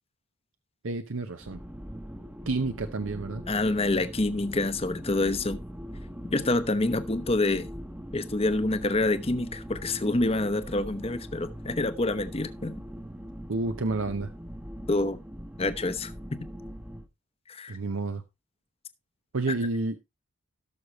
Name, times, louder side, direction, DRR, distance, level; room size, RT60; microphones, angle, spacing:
voice 1, 0.8-1.6 2.5-3.4 13.5-14.3 17.7-18.2 19.3-20.0, right 3 dB, 80° right, 0.8 m, -30 dB
sound 1, 1.4-17.1, equal, 5° right, 0.9 m, -41 dB
voice 2, 3.5-5.6 6.3-7.7 8.1-12.8 14.9-15.2 15.6-16.1 17.5-17.7, left 2 dB, 30° left, 0.9 m, -27 dB
17.5 x 6.5 x 3.0 m
head